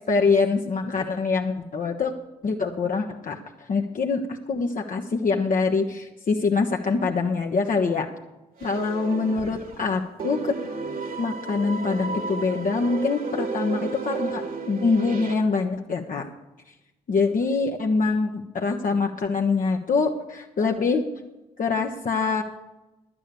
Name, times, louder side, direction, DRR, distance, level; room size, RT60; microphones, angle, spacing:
voice 1, 0.0-2.1 2.4-3.4 3.7-8.1 8.6-10.6 11.2-16.3 17.1-21.0 21.6-22.4, left 4 dB, 45° left, 1 dB, 1.1 m, -24 dB
sound 1, 8.6-9.9 10.2-15.3, right 4 dB, 50° right, 2.0 m, -33 dB
11.0 x 8.7 x 6.8 m, 1.0 s
hypercardioid pair, 40°, 19 cm